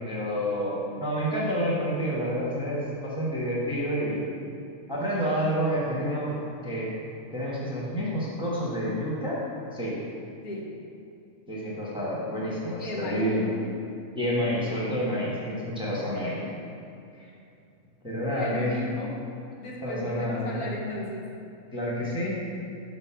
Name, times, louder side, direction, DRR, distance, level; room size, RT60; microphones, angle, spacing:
voice 1, 0.0-4.3 4.9-6.9 7.3-9.4 9.7-10.0 11.5-13.5 14.1-16.4 17.1-17.3 18.0-18.8 19.8-20.6 21.7-22.4, equal, 5° right, -6 dB, 0.9 m, -29 dB
voice 2, 10.4-10.7 12.8-13.6 18.3-19.2 19.6-21.3, left 1 dB, 80° left, -2 dB, 1.4 m, -34 dB
5.2 x 4.1 x 5.6 m, 2.6 s
omnidirectional pair, 1.5 m